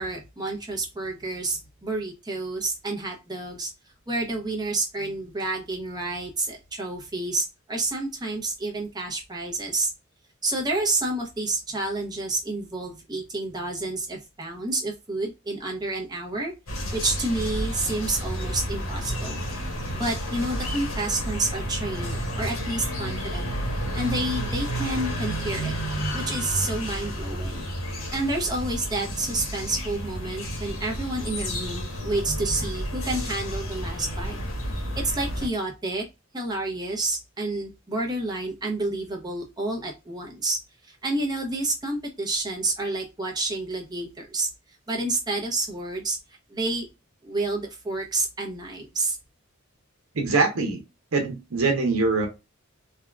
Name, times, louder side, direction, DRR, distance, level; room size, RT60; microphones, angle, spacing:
voice 1, 0.0-3.7 4.1-9.9 10.4-16.5 16.9-19.4 19.9-25.7 26.1-27.6 28.1-34.4 34.7-36.0 36.3-40.6 40.8-44.5 44.9-46.2 46.5-46.9 47.2-49.2, right 2 dB, 20° right, 0 dB, 0.8 m, -29 dB
sound 1, 16.7-35.5, equal, 75° left, 1.2 m, -31 dB
voice 2, 50.1-50.8 51.1-52.3, right 3 dB, 85° right, 3 dB, 0.8 m, -23 dB
3.5 x 2.3 x 2.3 m, 0.26 s
head